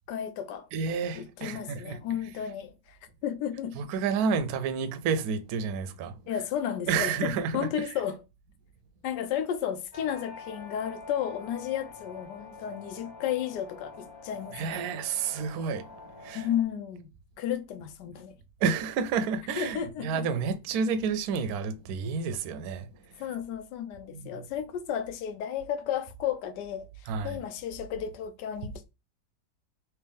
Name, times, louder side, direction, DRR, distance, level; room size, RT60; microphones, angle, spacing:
voice 1, 0.1-0.7 1.2-3.8 6.3-8.2 9.0-14.8 16.3-17.1 17.4-18.4 19.6-20.3 23.2-28.9, left 9 dB, 75° left, 1.2 m, -33 dB
voice 2, 0.7-2.0 3.8-6.3 6.9-7.9 14.5-15.9 16.2-16.5 18.6-23.2 24.1-24.5 27.1-27.4 28.6-28.7, right 5 dB, 70° right, 0.9 m, -30 dB
sound 1, 9.9-16.6, left 4 dB, 25° left, 0.5 m, -47 dB
3.3 x 3.1 x 3.4 m
omnidirectional pair, 1.9 m